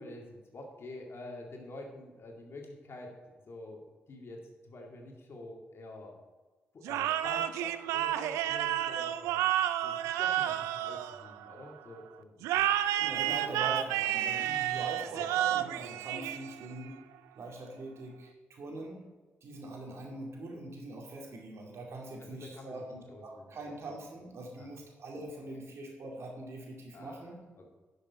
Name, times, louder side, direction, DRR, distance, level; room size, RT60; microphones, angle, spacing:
voice 1, 0.0-3.1 3.5-3.8 4.1-6.2 6.7-9.4 9.8-12.7 15.2-15.3 22.3-23.6 24.6-24.7 26.9-27.2 27.6-27.7, left 2 dB, 55° left, 1 dB, 2.2 m, -47 dB
sound 1, 6.8-11.7 12.4-16.8, right 12 dB, 85° right, 0.4 m, -31 dB
voice 2, 12.9-17.0 17.3-19.0 19.4-27.4, right 2 dB, 65° right, 0 dB, 2.4 m, -43 dB
11.0 x 6.8 x 4.2 m, 1.3 s
hypercardioid pair, 40°, 5 cm